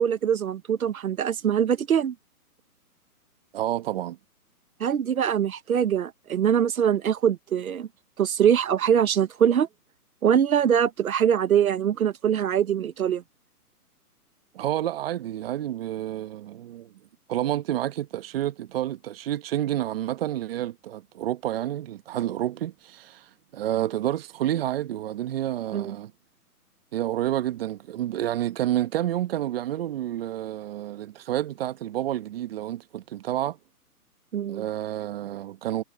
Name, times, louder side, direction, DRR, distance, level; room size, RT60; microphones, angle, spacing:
voice 1, 0.0-2.1 4.8-7.9 8.2-9.7 10.2-13.2 25.7-25.9 34.3-34.6, right 9 dB, 65° right, 1.3 m, -23 dB
voice 2, 3.5-4.2 14.5-16.9 17.3-26.1 26.9-33.6 34.5-35.8, right 12 dB, 40° right, 1.2 m, -29 dB
hypercardioid pair, 150°, 46 cm